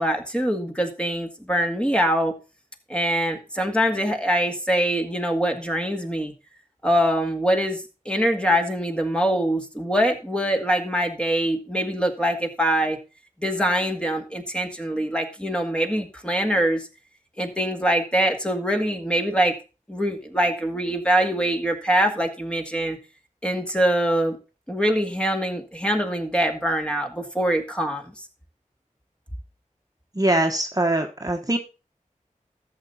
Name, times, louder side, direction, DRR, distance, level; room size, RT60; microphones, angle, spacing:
voice 1, 0.0-2.3 2.9-6.3 6.8-7.8 8.1-13.0 13.4-16.9 17.4-19.6 19.9-23.0 23.4-24.4 24.7-28.1, equal, 5° left, 4 dB, 1.9 m, -23 dB
voice 2, 30.1-31.6, right 1 dB, 25° right, 3 dB, 1.3 m, -22 dB
13.5 x 7.0 x 4.0 m, 0.31 s
wide cardioid pair, 60°, 14 cm